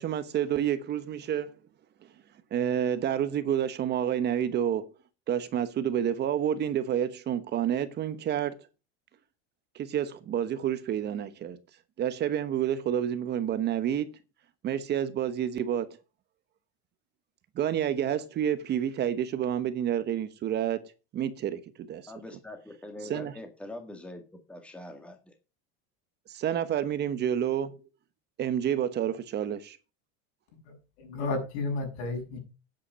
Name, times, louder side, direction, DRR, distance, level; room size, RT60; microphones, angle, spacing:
voice 1, 0.0-1.6 2.5-4.9 5.3-8.6 9.7-11.6 12.0-14.2 14.6-15.9 17.6-20.8 21.1-22.0 23.1-23.3 26.3-27.8 28.4-29.8, right 9 dB, 30° right, 1.1 m, -29 dB
voice 2, 22.1-25.4, left 1 dB, 5° left, 1.8 m, -43 dB
voice 3, 30.7-32.4, left 3 dB, 80° left, 7.2 m, -33 dB
10.0 x 8.1 x 6.2 m
supercardioid pair, 155°, 33 cm